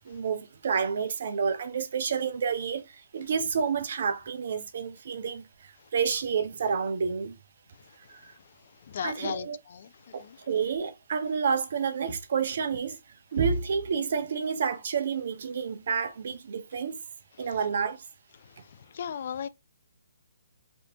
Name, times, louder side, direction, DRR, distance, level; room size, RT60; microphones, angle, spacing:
voice 1, 0.0-5.5 5.9-7.4 8.2-8.3 9.0-9.6 10.1-13.0 13.3-17.0 17.4-18.0, right 6 dB, 55° right, 0.5 m, -29 dB
voice 2, 8.9-10.4 18.9-19.5, left 8 dB, 50° left, 0.3 m, -36 dB
3.4 x 2.6 x 2.8 m
figure-of-eight pair, 140°, 0 cm